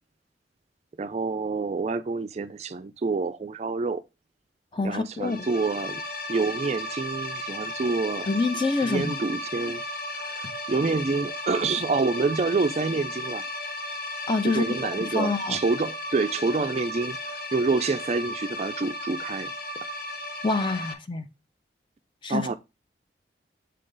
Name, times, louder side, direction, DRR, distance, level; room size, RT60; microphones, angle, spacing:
voice 1, 1.0-4.0 4.8-6.0 6.3-8.3 8.8-9.8 10.1-13.4 14.4-19.5 22.3-22.5, right 4 dB, 35° right, 0.3 m, -27 dB
voice 2, 4.7-5.4 8.3-9.1 14.3-14.6 14.9-15.6 20.4-21.3 22.2-22.5, left 3 dB, 25° left, 0.6 m, -26 dB
sound 1, 5.2-20.9, left 1 dB, 50° left, 0.9 m, -35 dB
6.7 x 3.9 x 3.8 m
head